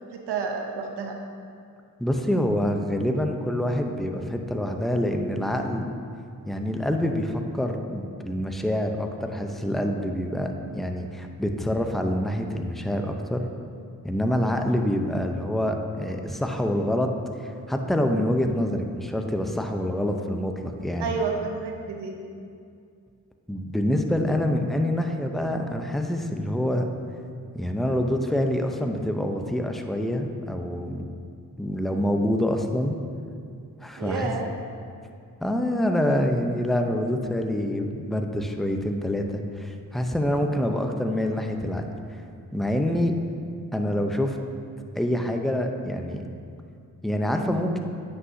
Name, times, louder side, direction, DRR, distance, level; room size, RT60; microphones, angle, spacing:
voice 1, 0.1-1.2 21.0-22.1 34.0-34.5, right 4 dB, 85° right, 2 dB, 0.8 m, -30 dB
voice 2, 2.0-5.9 6.5-13.4 14.0-17.1 17.4-21.1 23.5-26.9 27.5-31.0 31.6-33.0 33.8-34.3 35.4-42.2 42.5-43.1 43.7-44.4 44.9-46.2 47.0-47.8, left 1 dB, ahead, 4 dB, 0.6 m, -26 dB
9.4 x 5.7 x 2.7 m, 2.4 s
supercardioid pair, 40°, 40 cm